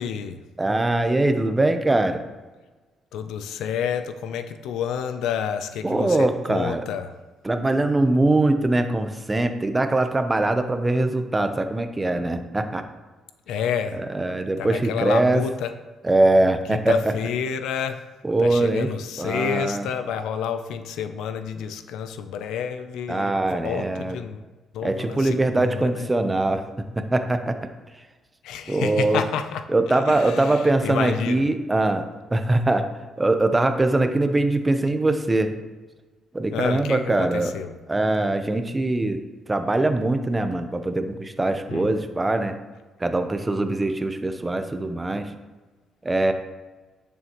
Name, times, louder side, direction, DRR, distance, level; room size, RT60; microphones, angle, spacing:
voice 1, 0.0-0.4 3.1-7.1 13.5-14.0 14.6-15.7 16.7-18.1 18.4-24.5 24.7-26.1 28.4-29.7 29.9-31.5 36.5-37.8 41.7-41.9, left 8 dB, 85° left, 10 dB, 0.5 m, -29 dB
voice 2, 0.6-2.2 5.8-6.8 7.4-12.8 14.1-15.4 16.0-17.1 18.2-18.9 19.2-19.9 23.1-24.2 24.8-26.6 27.0-27.6 28.7-29.2 29.7-32.1 32.3-32.9 33.2-35.5 36.3-37.5 37.9-39.2 39.5-42.5 43.0-45.3 46.0-46.3, right 2 dB, 20° right, 7 dB, 0.8 m, -22 dB
10.5 x 7.0 x 3.0 m, 1.3 s
cardioid pair, 90°, 0 cm